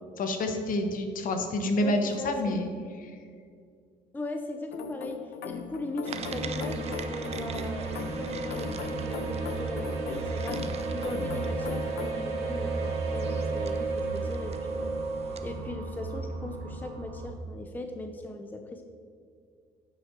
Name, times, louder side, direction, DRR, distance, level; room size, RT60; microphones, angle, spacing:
voice 1, 0.2-2.7 3.0-3.1, left 1 dB, 55° left, 5 dB, 1.1 m, -28 dB
voice 2, 1.8-2.5 4.1-10.6 10.9-15.0 15.2-18.8, left 2 dB, 10° left, 5 dB, 0.5 m, -38 dB
sound 1, 4.7-12.1, left 7 dB, 75° left, 0.6 m, -40 dB
sound 2, 6.0-15.6, right 4 dB, 40° right, 0.6 m, -35 dB
sound 3, 6.1-17.3, right 2 dB, 80° right, 1.7 m, -36 dB
9.2 x 5.8 x 4.6 m, 2.2 s
cardioid pair, 110°, 17 cm